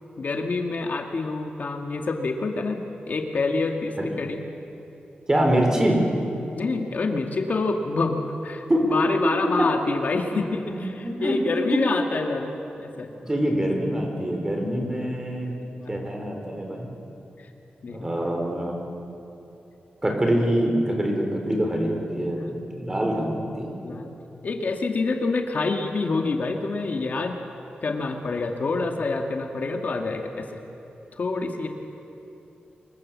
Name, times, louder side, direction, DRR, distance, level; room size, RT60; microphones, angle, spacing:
voice 1, 0.2-4.4 6.6-12.5 12.8-13.1 15.8-15.9 17.8-18.1 22.4-22.6 23.8-24.1 24.4-27.4 27.8-30.6 31.2-31.7, left 3 dB, 55° left, 4 dB, 1.9 m, -27 dB
voice 2, 5.3-6.2 8.7-8.9 9.6-9.7 10.3-10.4 10.7-11.4 11.7-11.8 13.2-15.5 15.9-16.9 17.9-18.8 20.0-23.8, right 1 dB, 20° right, 2 dB, 4.1 m, -25 dB
25.5 x 22.0 x 7.5 m, 3.0 s
wide cardioid pair, 125°, 3 cm